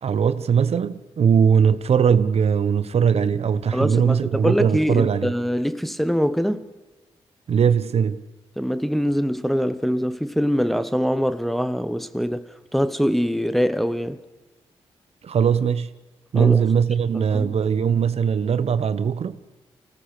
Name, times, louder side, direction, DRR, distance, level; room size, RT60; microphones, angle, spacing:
voice 1, 0.0-5.3 7.5-8.2 15.2-15.9 16.3-19.4, right 7 dB, 60° right, 1.0 m, -20 dB
voice 2, 3.7-6.6 8.6-14.2 16.3-16.6 17.3-17.6, equal, ahead, 1.1 m, -23 dB
24.0 x 17.0 x 6.7 m
cardioid pair, 55°, 12 cm